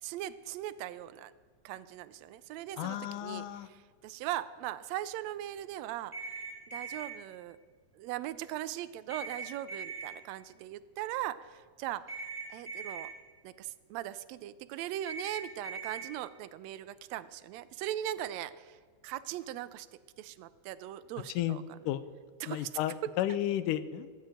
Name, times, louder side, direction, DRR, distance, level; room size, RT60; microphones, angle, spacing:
voice 1, 0.0-1.3 1.6-6.1 6.7-7.6 7.9-13.1 13.4-19.9 20.2-21.8 22.4-23.1, right 13 dB, 85° right, 13 dB, 1.5 m, -39 dB
voice 2, 2.8-3.7 21.4-21.6 21.9-22.0 22.5-24.1, left 12 dB, 90° left, 14 dB, 2.2 m, -32 dB
sound 1, 6.1-7.1 9.1-10.1 12.1-13.1 15.0-16.1, right 4 dB, 15° right, 2.6 m, -40 dB
17.0 x 7.5 x 9.0 m, 1.5 s
omnidirectional pair, 3.7 m